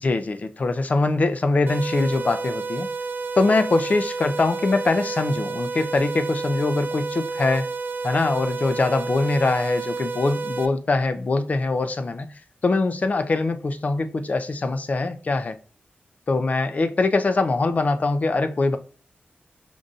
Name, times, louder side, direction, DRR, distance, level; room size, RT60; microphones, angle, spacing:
voice 1, 0.0-2.9 3.4-7.7 8.0-12.3 12.6-15.6 16.3-18.8, left 3 dB, 40° left, 0.4 m, -23 dB
sound 1, 1.7-10.7, right 4 dB, 60° right, 0.4 m, -30 dB
5.3 x 2.6 x 2.4 m
wide cardioid pair, 125°, 4 cm